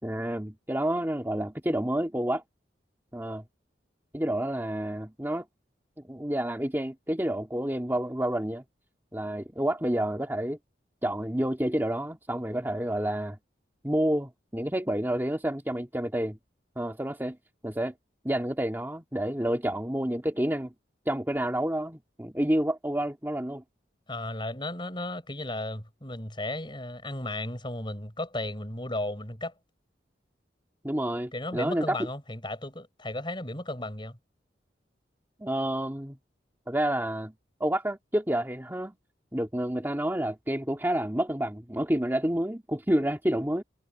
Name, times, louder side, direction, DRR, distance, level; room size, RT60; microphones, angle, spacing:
voice 1, 0.0-2.4 3.1-3.4 4.1-5.5 6.0-8.6 9.1-10.6 11.0-13.4 13.8-16.4 16.8-17.4 17.6-17.9 18.2-20.7 21.1-23.6 30.8-32.0 35.4-36.2 36.7-37.3 37.6-39.0 39.3-43.6, right 1 dB, 10° right, 2.0 m, -29 dB
voice 2, 24.1-29.5 31.3-34.2, left 1 dB, 25° left, 6.9 m, -35 dB
head